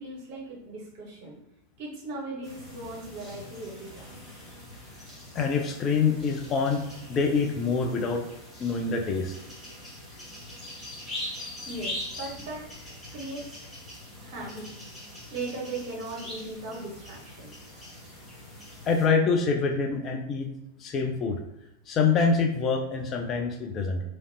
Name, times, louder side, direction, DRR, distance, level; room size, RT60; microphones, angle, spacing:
voice 1, 0.0-1.4 1.8-4.2 11.7-12.6 13.1-13.7 14.2-14.7 15.3-17.5, right 2 dB, 45° right, -3 dB, 1.2 m, -38 dB
sound 1, 2.4-19.1, left 1 dB, 5° left, 1.2 m, -42 dB
voice 2, 5.3-6.8 7.1-8.2 8.6-9.4 18.9-20.5 20.8-21.4 21.9-24.0, left 5 dB, 30° left, 3 dB, 0.4 m, -25 dB
3.1 x 2.5 x 2.6 m, 0.88 s
figure-of-eight pair, 90°, 0 cm